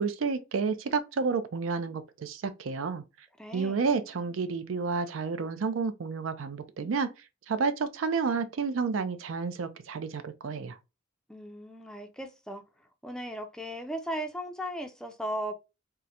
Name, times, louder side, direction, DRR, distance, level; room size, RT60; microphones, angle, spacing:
voice 1, 0.0-3.0 3.5-7.1 7.5-10.8, right 5 dB, 75° right, 0.4 m, -30 dB
voice 2, 3.4-3.9 11.3-12.6 13.0-15.5, equal, 5° left, 0.4 m, -37 dB
3.6 x 2.1 x 2.8 m
head